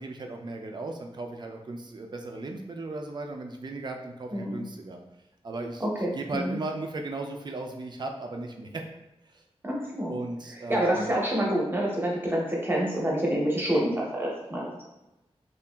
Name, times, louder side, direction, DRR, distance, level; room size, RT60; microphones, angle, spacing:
voice 1, 0.0-5.0 5.4-8.8 9.3-9.4 10.1-11.1, right 2 dB, 45° right, 3 dB, 0.4 m, -36 dB
voice 2, 5.8-6.6 9.6-10.1 10.7-14.8, right 1 dB, 20° right, -3 dB, 0.7 m, -27 dB
2.8 x 2.4 x 2.2 m, 0.96 s
wide cardioid pair, 80°, 11 cm